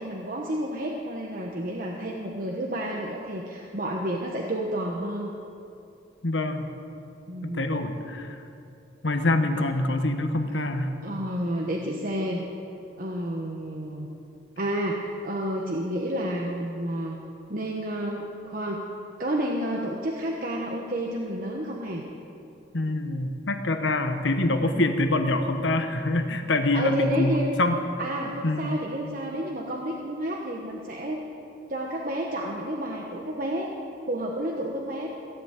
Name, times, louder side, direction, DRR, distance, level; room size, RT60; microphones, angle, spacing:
voice 1, 0.0-5.3 7.3-7.7 11.0-12.4 13.0-14.1 14.6-17.2 17.5-18.9 19.2-22.0 24.7-25.0 26.7-27.5 28.0-31.2 31.7-33.7 34.1-35.1, right 1 dB, 50° right, -1 dB, 1.2 m, -30 dB
voice 2, 6.2-6.7 7.4-8.4 9.0-11.0 22.7-27.8 28.4-28.7, left 2 dB, 80° left, 7 dB, 1.2 m, -25 dB
16.0 x 8.3 x 9.0 m, 2.7 s
head